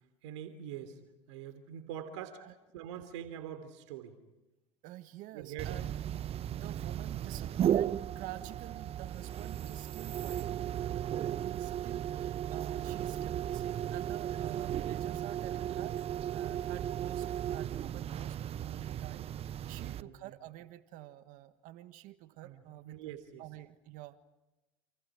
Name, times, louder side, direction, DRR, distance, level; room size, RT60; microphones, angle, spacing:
voice 1, 0.2-1.0 1.3-2.4 2.7-4.1 5.3-5.8 19.8-20.4 22.3-23.4, right 9 dB, 80° right, 9 dB, 3.2 m, -44 dB
voice 2, 4.8-5.9 6.5-23.0 23.4-24.2, right 14 dB, 65° right, 11 dB, 1.6 m, -49 dB
sound 1, 5.6-20.0, right 10 dB, 40° right, 0.8 m, -35 dB
29.5 x 29.0 x 5.0 m, 1.0 s
hypercardioid pair, 85°, 15 cm